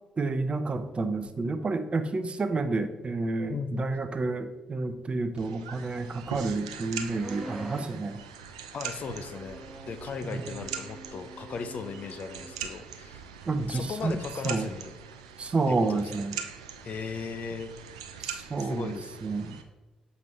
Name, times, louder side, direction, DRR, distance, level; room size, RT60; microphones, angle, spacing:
voice 1, 0.2-8.2 10.2-10.5 13.5-14.7 15.4-16.4 18.2-19.0 19.2-19.6, right 3 dB, 35° right, 9 dB, 0.7 m, -30 dB
voice 2, 3.5-3.9 8.7-13.2 13.7-14.9 15.7-16.0 16.8-17.7 18.6-19.1, left 5 dB, 55° left, 10 dB, 0.5 m, -37 dB
sound 1, 5.4-19.6, right 7 dB, 85° right, 0.4 m, -42 dB
sound 2, 7.1-8.0 8.9-12.6, right 1 dB, 5° right, 0.8 m, -45 dB
6.9 x 4.8 x 3.2 m, 1.2 s
hypercardioid pair, 45°, 3 cm